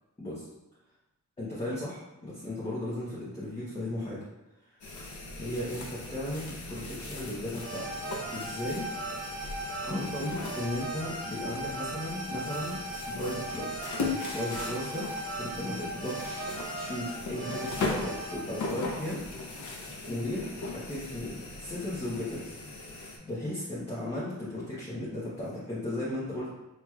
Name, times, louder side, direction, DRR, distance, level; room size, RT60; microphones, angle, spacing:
voice 1, 1.4-4.2 5.4-7.9 8.3-8.9 9.8-12.8 13.1-13.9 14.3-15.1 15.4-16.5 16.8-19.2 20.1-22.5 22.9-26.5, left 1 dB, 20° left, -9 dB, 0.9 m, -36 dB
sound 1, 4.8-23.2, left 3 dB, 70° left, 0.8 m, -39 dB
sound 2, 7.5-18.7, right 2 dB, 50° right, 1.2 m, -38 dB
5.9 x 3.0 x 2.3 m, 0.96 s
wide cardioid pair, 180°, 31 cm